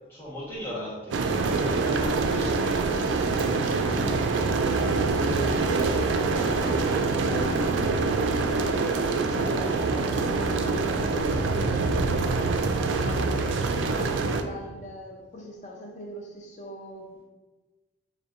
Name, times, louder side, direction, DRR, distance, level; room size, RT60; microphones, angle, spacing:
voice 1, 0.1-4.1, equal, 10° left, -9 dB, 1.1 m, -39 dB
sound 1, 1.1-14.4, right 3 dB, 70° right, 0.3 m, -25 dB
voice 2, 4.7-8.6 9.2-12.5 13.0-17.2, equal, 35° left, 0 dB, 0.5 m, -39 dB
5.2 x 2.2 x 2.5 m, 1.2 s
head